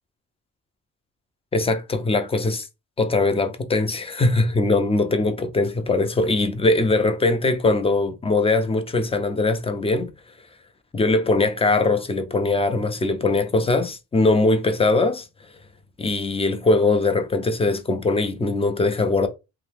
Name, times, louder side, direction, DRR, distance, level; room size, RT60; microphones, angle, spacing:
voice 1, 1.5-2.7 3.0-10.1 10.9-15.3 16.0-19.3, left 2 dB, 20° left, 0.5 m, -21 dB
2.7 x 2.1 x 3.4 m
cardioid pair, 90°, 30 cm